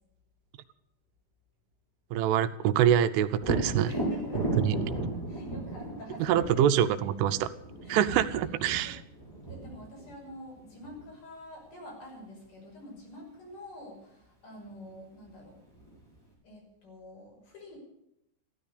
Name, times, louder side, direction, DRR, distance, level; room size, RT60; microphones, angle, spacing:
voice 1, 2.1-3.9 4.6-4.7 6.2-7.5 7.9-9.0, right 10 dB, 85° right, 11 dB, 3.3 m, -25 dB
Thunder, 3.4-11.1 14.7-14.8 15.3-16.2, right 1 dB, 5° left, 4.8 m, -35 dB
voice 2, 3.9-7.1 7.8-8.3 8.9-9.0 9.4-15.6 16.4-17.8, left 1 dB, 45° left, 0 dB, 7.2 m, -47 dB
15.0 x 13.5 x 6.7 m, 0.78 s
omnidirectional pair, 5.5 m